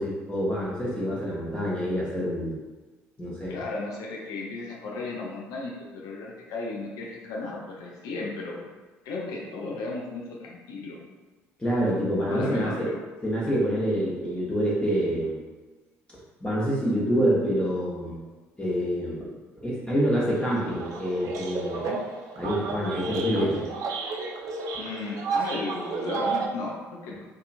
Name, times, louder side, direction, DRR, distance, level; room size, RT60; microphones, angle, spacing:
voice 1, 0.0-2.6 3.2-3.6 11.6-12.9 13.2-15.4 16.1-18.2 18.6-19.3 19.6-21.9 22.4-23.7, equal, 15° left, -7 dB, 0.9 m, -27 dB
voice 2, 3.5-8.6 9.0-11.0 12.3-13.0 21.7-22.0 24.8-27.2, left 3 dB, 65° left, -3 dB, 0.5 m, -35 dB
sound 1, 20.3-26.5, right 4 dB, 60° right, 0.4 m, -32 dB
2.8 x 2.3 x 2.5 m, 1.2 s
hypercardioid pair, 55°, 7 cm